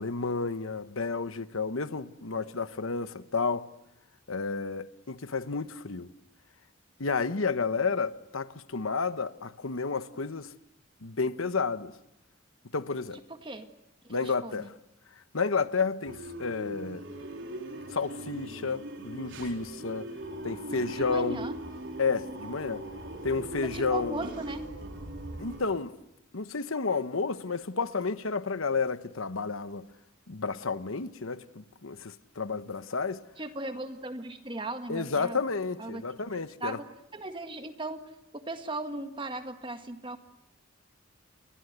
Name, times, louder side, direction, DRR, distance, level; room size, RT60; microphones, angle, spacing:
voice 1, 0.0-3.7 4.3-6.1 7.0-10.5 11.0-11.9 12.7-13.2 14.1-14.7 15.3-17.0 17.9-20.1 20.4-21.4 22.0-22.8 23.2-24.3 25.4-25.9 26.3-29.9 30.3-33.2 34.9-36.8, left 4 dB, 85° left, 1.1 m, -31 dB
voice 2, 14.0-14.7 20.9-21.5 23.6-24.6 33.4-35.4 35.8-36.0 36.6-36.9 37.1-38.0 38.3-40.2, right 2 dB, 25° right, 1.8 m, -37 dB
sound 1, 16.0-25.7, right 1 dB, 65° right, 4.4 m, -40 dB
sound 2, 20.2-25.5, right 1 dB, 45° right, 6.9 m, -47 dB
29.5 x 21.5 x 8.1 m
head